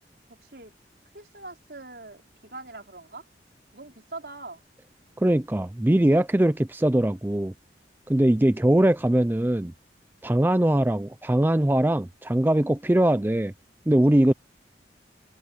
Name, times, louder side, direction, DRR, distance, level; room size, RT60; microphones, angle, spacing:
voice 1, 0.3-0.7 1.1-3.2 3.7-4.6, right 2 dB, 65° right, 4.8 m, -42 dB
voice 2, 5.2-7.5 8.1-9.7 10.2-13.5 13.9-14.3, right 1 dB, 10° right, 0.4 m, -21 dB
head